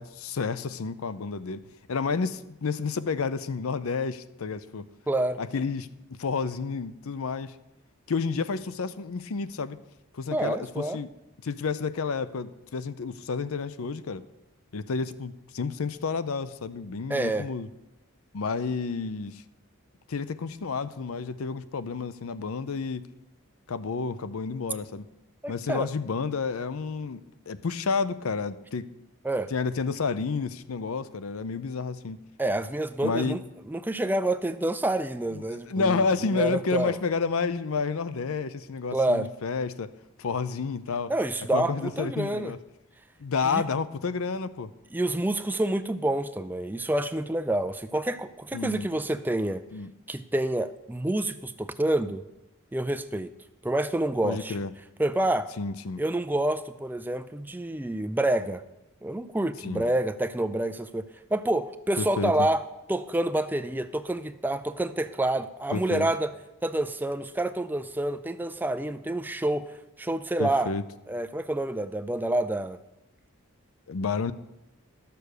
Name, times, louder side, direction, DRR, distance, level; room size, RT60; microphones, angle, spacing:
voice 1, 0.0-1.6 1.9-4.9 5.4-5.9 6.2-7.5 8.1-9.8 10.1-11.1 11.4-14.2 14.7-17.7 18.3-19.4 20.1-23.0 23.7-25.0 25.5-28.9 29.5-32.2 33.0-33.4 35.3-39.9 40.2-41.1 41.5-42.6 43.2-44.7 48.5-48.9 49.7-49.9 54.2-54.7 55.6-56.0 59.6-59.9 62.0-62.3 65.7-66.1 70.4-70.8 73.9-74.3, left 4 dB, 80° left, 14 dB, 0.6 m, -30 dB
voice 2, 5.1-5.4 10.3-11.0 17.1-17.5 25.4-25.9 29.2-29.5 32.4-33.4 33.7-36.9 38.9-39.3 41.1-42.5 43.4-43.7 44.9-49.6 50.1-52.2 52.7-53.3 53.6-54.6 55.0-55.5 56.0-58.6 59.0-61.1 61.3-66.3 66.6-70.7 71.1-72.8, right 1 dB, 10° right, 11 dB, 0.4 m, -28 dB
12.5 x 6.8 x 6.6 m, 0.96 s
head